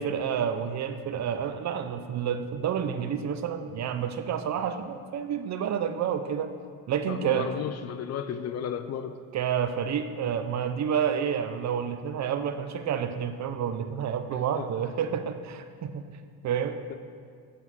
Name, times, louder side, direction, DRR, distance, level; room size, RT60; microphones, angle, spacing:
voice 1, 0.0-6.6 6.9-7.5 9.3-16.0 16.4-16.8, right 8 dB, 45° right, 8 dB, 0.6 m, -29 dB
voice 2, 7.1-9.2 14.5-14.7 16.9-17.0, left 8 dB, 45° left, 10 dB, 0.4 m, -33 dB
8.3 x 3.6 x 5.9 m, 2.1 s
supercardioid pair, 85°, 39 cm